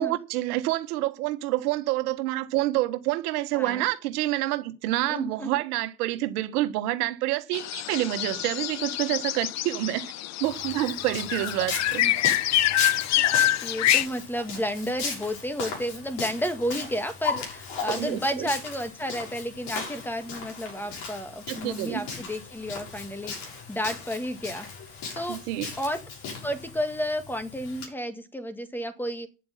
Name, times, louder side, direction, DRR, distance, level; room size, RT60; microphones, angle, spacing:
voice 1, 0.0-10.1 10.4-12.0 17.9-18.5 21.5-22.0 25.3-25.7, right 16 dB, 70° right, 1.6 m, -28 dB
voice 2, 3.5-3.9 5.1-5.5 12.0-12.1 13.2-13.3 13.6-24.7 25.1-25.4 25.8-26.0 26.4-29.3, equal, 5° left, 1.9 m, -32 dB
sound 1, 7.5-14.1, left 14 dB, 35° left, 0.6 m, -26 dB
Walk footsteps, 10.4-27.9, left 4 dB, 60° left, 6.9 m, -36 dB
10.0 x 7.8 x 7.4 m
hypercardioid pair, 95°, 46 cm